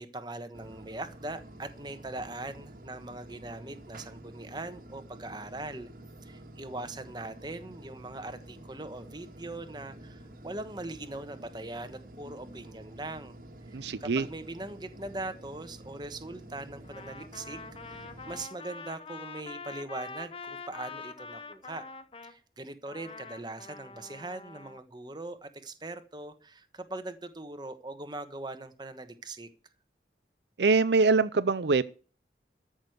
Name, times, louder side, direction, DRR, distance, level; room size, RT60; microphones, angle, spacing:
voice 1, 0.0-5.9 6.2-13.4 13.7-17.6 17.8-21.8 22.2-29.5, right 2 dB, 25° right, 1.2 m, -41 dB
sound 1, 0.5-18.4, right 1 dB, 50° right, 1.7 m, -49 dB
voice 2, 13.7-14.3 30.6-31.8, right 4 dB, 75° right, 0.6 m, -24 dB
Trumpet, 16.8-22.4 22.9-24.8, left 4 dB, 30° left, 0.8 m, -45 dB
13.5 x 6.3 x 7.9 m
head